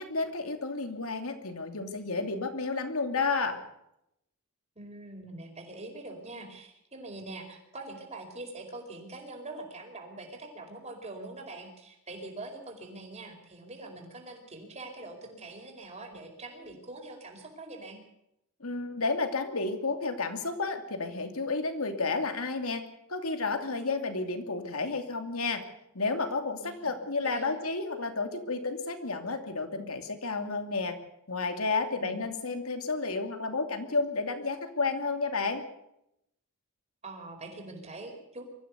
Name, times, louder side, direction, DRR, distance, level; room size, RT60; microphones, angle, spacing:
voice 1, 0.0-3.6 18.6-22.8 23.1-25.6 25.9-31.0 31.3-35.6, left 3 dB, 75° left, 7 dB, 2.8 m, -31 dB
voice 2, 4.8-18.0 26.6-27.6 31.9-32.2 37.0-38.4, right 2 dB, 30° right, 3 dB, 4.7 m, -44 dB
23.5 x 14.5 x 8.2 m, 0.81 s
head